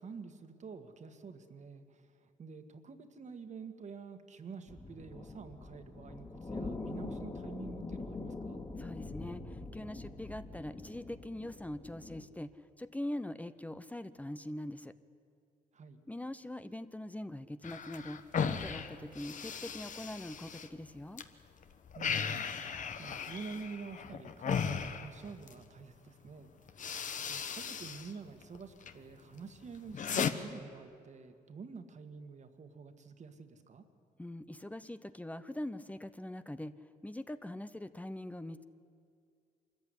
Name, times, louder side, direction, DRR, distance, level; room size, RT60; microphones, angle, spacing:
voice 1, 0.0-8.6 15.7-16.0 22.0-33.8, right 5 dB, 50° right, 8 dB, 1.8 m, -48 dB
sound 1, 4.7-12.2, left 3 dB, 30° left, 2.7 m, -44 dB
voice 2, 8.8-12.5 12.8-14.9 16.1-21.2 34.2-36.8 37.0-38.6, left 1 dB, 10° left, 12 dB, 0.7 m, -42 dB
sound 2, 17.6-21.2 21.6-25.6 26.3-26.4 26.7-28.1 28.4-29.0 29.4-30.3, left 7 dB, 55° left, 1.3 m, -37 dB
24.5 x 14.0 x 9.9 m, 2.3 s
cardioid pair, 80°, 15 cm